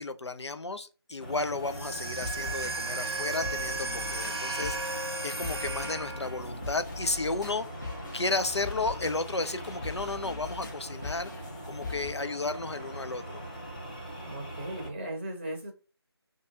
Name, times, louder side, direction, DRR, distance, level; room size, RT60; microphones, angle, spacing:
voice 1, 0.0-7.7 8.1-11.3 11.7-13.4, left 3 dB, 85° left, 0.4 m, -33 dB
sound 1, 1.2-14.9, right 1 dB, 20° left, 0.5 m, -42 dB
sound 2, 1.6-12.1, left 3 dB, 45° left, 0.9 m, -42 dB
sound 3, 1.7-6.5, right 3 dB, 70° right, 0.7 m, -35 dB
voice 2, 14.2-15.7, right 1 dB, 25° right, 0.6 m, -37 dB
2.6 x 2.3 x 2.8 m
figure-of-eight pair, 160°, 14 cm